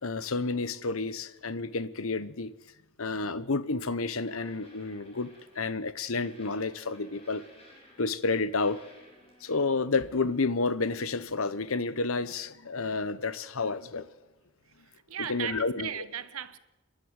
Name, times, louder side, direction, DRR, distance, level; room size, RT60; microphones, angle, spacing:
voice 1, 0.0-2.5 3.0-7.4 8.0-8.8 9.4-14.1 15.3-15.9, left 3 dB, 70° left, 1.0 m, -30 dB
sound 1, 3.7-3.8 4.3-5.8 6.2-8.3 8.6-9.9 12.2-12.3, left 1 dB, 25° left, 6.3 m, -56 dB
voice 2, 14.7-16.6, right 9 dB, 80° right, 1.1 m, -37 dB
29.5 x 11.5 x 8.2 m
head